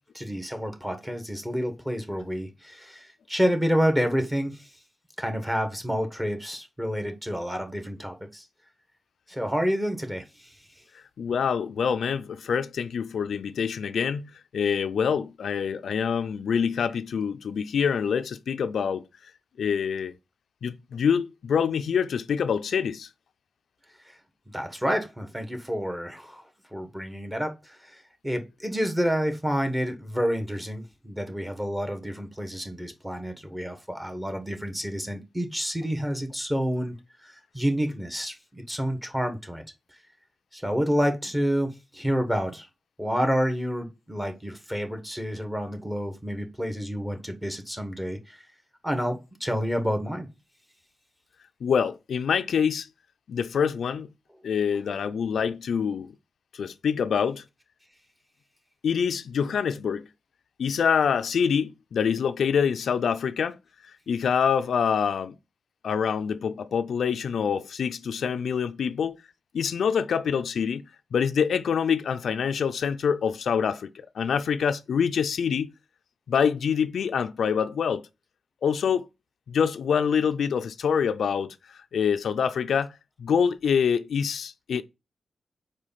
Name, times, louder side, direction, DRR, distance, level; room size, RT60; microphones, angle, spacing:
voice 1, 0.1-4.7 5.2-8.4 9.3-10.5 24.1-24.2 24.5-26.4 26.7-36.9 37.2-39.6 40.5-42.7 43.0-48.4 48.8-50.3, equal, 10° right, 1.3 m, -29 dB
voice 2, 11.2-19.0 19.6-20.1 20.6-23.1 51.6-52.9 53.3-54.1 54.4-56.1 56.5-57.4 58.8-60.1 60.6-63.6 64.1-65.3 65.8-69.2 69.5-70.8 71.1-73.9 74.2-75.7 76.3-78.0 78.6-79.1 79.5-81.5 81.9-82.9 83.2-84.8, left 7 dB, 85° left, 0.4 m, -25 dB
4.9 x 4.4 x 5.6 m
wide cardioid pair, 95°, 0 cm